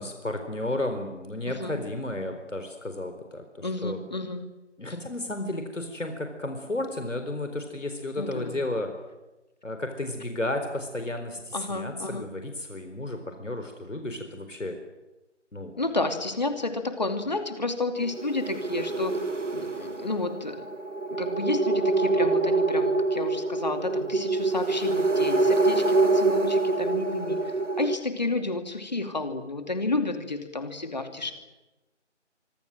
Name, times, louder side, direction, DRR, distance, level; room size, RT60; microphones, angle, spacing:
voice 1, 0.0-4.0 4.8-8.9 9.6-14.8 15.5-15.7 31.2-31.3, left 1 dB, 85° left, 6 dB, 4.3 m, -33 dB
voice 2, 1.5-1.8 3.6-4.4 8.2-8.6 11.5-12.3 15.8-19.2 19.5-20.7 21.1-27.4 27.8-31.3, left 2 dB, 35° left, 7 dB, 2.6 m, -31 dB
sound 1, 18.1-28.0, right 3 dB, 85° right, 2.2 m, -25 dB
25.5 x 23.5 x 7.7 m, 1.1 s
figure-of-eight pair, 175°, 36 cm